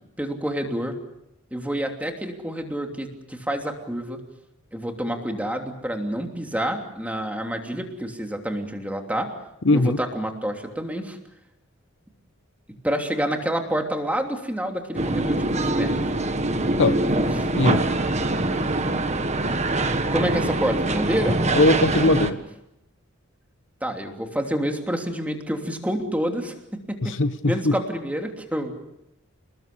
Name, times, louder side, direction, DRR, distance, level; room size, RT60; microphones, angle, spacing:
voice 1, 0.2-1.0 1.5-4.2 4.7-9.3 9.7-11.2 12.8-15.9 17.3-17.6 20.1-21.4 23.8-26.5 26.9-27.1 27.4-28.8, equal, 5° right, 3 dB, 3.0 m, -28 dB
voice 2, 9.6-10.0 16.8-17.0 17.5-17.9 21.5-22.4 27.0-27.7, left 2 dB, 60° left, 12 dB, 1.0 m, -20 dB
sound 1, 15.0-22.3, right 2 dB, 35° right, 1.5 m, -24 dB
29.5 x 20.0 x 6.9 m, 0.84 s
head